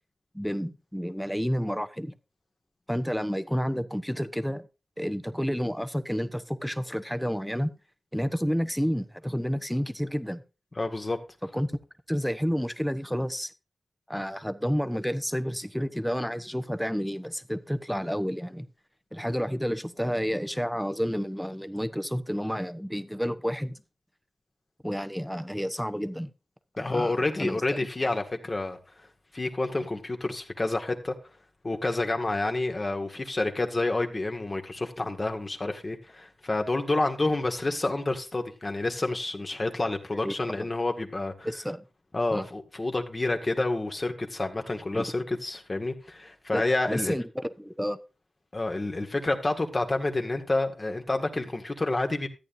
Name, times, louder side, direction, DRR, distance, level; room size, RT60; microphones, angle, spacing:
voice 1, 0.3-2.1 2.9-4.7 5.0-7.7 8.1-10.4 11.5-11.7 12.1-13.5 14.1-18.7 19.1-23.8 24.8-26.3 26.8-27.6 40.1-40.5 41.4-41.8 42.3-42.5 44.9-45.0 46.5-48.0, equal, ahead, 0.9 m, -30 dB
voice 2, 10.8-11.2 26.8-28.8 29.3-31.1 31.6-41.5 42.1-47.1 48.5-52.3, left 2 dB, 40° left, 1.7 m, -29 dB
13.5 x 8.9 x 2.7 m
cardioid pair, 55°, 0 cm